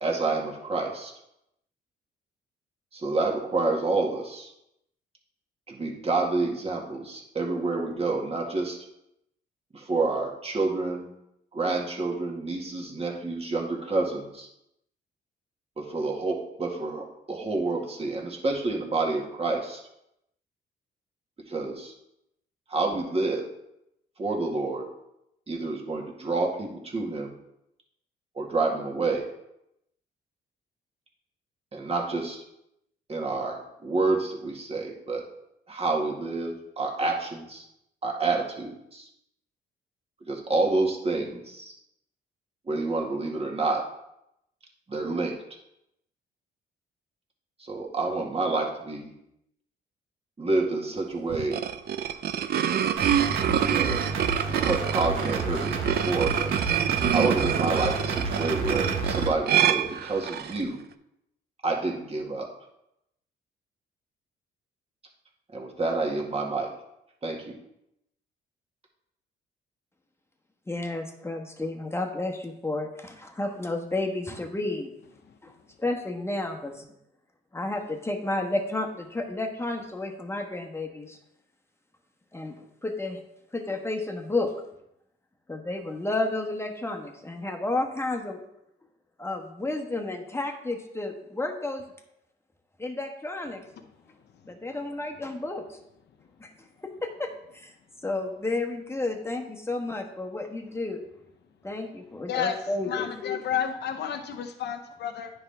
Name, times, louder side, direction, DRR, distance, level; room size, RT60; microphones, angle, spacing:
voice 1, 0.0-1.1 2.9-4.5 5.7-8.8 9.7-11.1 11.5-14.5 15.8-19.8 21.5-21.9 22.7-23.5 24.2-24.9 25.5-27.3 28.4-29.3 31.7-32.4 33.1-35.2 35.7-37.6 38.0-39.1 40.3-41.7 42.7-43.8 44.9-45.4 47.6-49.1 50.4-51.6 53.7-54.0 54.4-56.6 57.1-60.8 61.6-62.5 65.5-66.7 67.2-67.6, right 3 dB, 30° right, 0 dB, 1.8 m, -28 dB
sound 1, 51.3-60.6, right 10 dB, 55° right, 0.5 m, -26 dB
sound 2, 53.0-59.3, right 4 dB, 85° right, 1.2 m, -30 dB
voice 2, 70.7-74.9 75.4-75.5 75.8-76.9 77.5-81.2 82.3-83.2 83.5-84.5 85.5-88.4 89.2-91.8 92.8-93.6 94.5-95.8 96.4-96.5 96.8-97.7 98.0-101.0 101.6-103.1, left 2 dB, 10° left, 3 dB, 1.2 m, -31 dB
voice 3, 102.9-105.3, left 8 dB, 60° left, 6 dB, 0.7 m, -30 dB
9.6 x 5.5 x 3.4 m, 0.82 s
cardioid pair, 90°, 20 cm